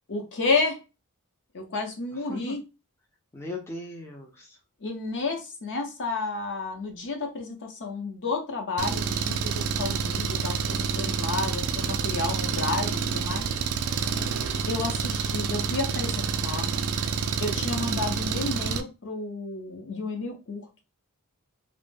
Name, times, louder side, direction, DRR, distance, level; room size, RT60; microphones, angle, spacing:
voice 1, 0.1-0.8 1.5-2.6 4.8-13.5 14.7-16.7 17.4-20.7, left 3 dB, 55° left, 0.6 m, -31 dB
voice 2, 3.3-4.6 14.2-14.7, left 2 dB, 10° left, 0.3 m, -39 dB
Engine, 8.8-18.8, right 6 dB, 75° right, 0.3 m, -28 dB
2.1 x 2.0 x 3.1 m
head